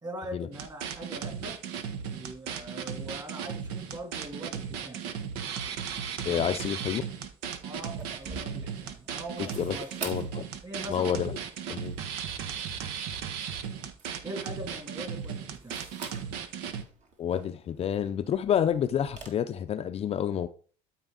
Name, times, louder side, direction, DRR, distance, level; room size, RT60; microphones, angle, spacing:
voice 1, 0.0-1.6 2.1-5.1 6.2-6.5 7.6-10.2 10.6-11.1 14.2-15.8, right 1 dB, 25° right, 2.5 m, -42 dB
sound 1, 0.5-16.8, right 7 dB, 75° right, 1.0 m, -36 dB
voice 2, 6.2-7.0 9.4-10.5 10.9-11.4 11.7-11.9 17.2-20.5, left 9 dB, 35° left, 0.5 m, -29 dB
sound 2, 7.8-19.3, right 4 dB, 45° right, 2.0 m, -48 dB
12.0 x 4.4 x 3.8 m
supercardioid pair, 100°, 17 cm